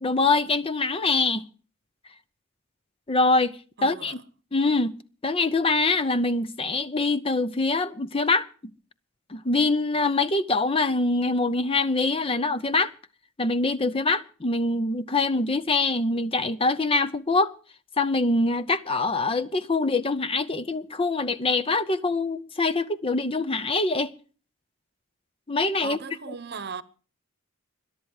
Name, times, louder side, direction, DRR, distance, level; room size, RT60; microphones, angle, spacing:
voice 1, 0.0-1.5 3.1-4.2 4.5-5.0 5.2-8.5 9.3-12.9 13.4-17.5 18.0-24.1 25.5-26.0, left 3 dB, 25° left, 0.6 m, -24 dB
voice 2, 3.8-4.2 25.8-26.8, right 5 dB, 45° right, 1.0 m, -37 dB
21.5 x 11.5 x 4.7 m
head